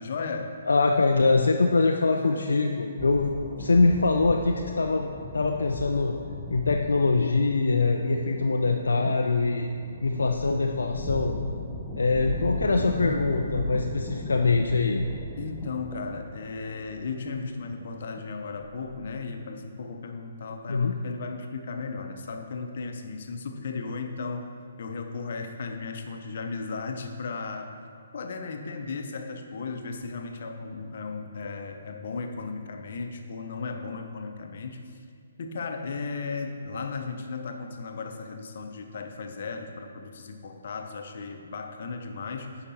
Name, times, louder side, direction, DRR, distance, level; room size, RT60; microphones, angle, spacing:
voice 1, 0.0-0.6 2.1-2.4 15.4-27.8 28.1-34.8 35.4-42.6, left 4 dB, 55° left, 5 dB, 0.8 m, -35 dB
voice 2, 0.7-6.1 6.5-9.7 10.0-11.3 12.0-15.0 20.7-21.0, left 3 dB, 75° left, 2 dB, 0.4 m, -23 dB
sound 1, 3.0-19.2, left 1 dB, 5° left, 0.9 m, -37 dB
9.9 x 5.0 x 4.3 m, 2.2 s
figure-of-eight pair, 135°, 0 cm